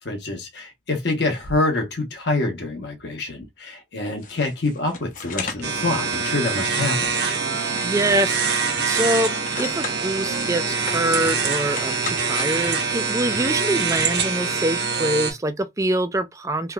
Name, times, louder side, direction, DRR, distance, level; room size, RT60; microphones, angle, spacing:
voice 1, 0.0-7.1, left 2 dB, 65° left, 1.0 m, -26 dB
sound 1, 4.2-5.7 6.1-6.2 6.7-6.9 7.2-9.0 9.3-14.4, left 4 dB, 45° left, 0.7 m, -37 dB
sound 2, 5.6-15.3, right 5 dB, 60° right, 1.1 m, -24 dB
voice 2, 7.5-16.7, right 1 dB, 15° right, 0.4 m, -25 dB
3.4 x 2.9 x 2.3 m
head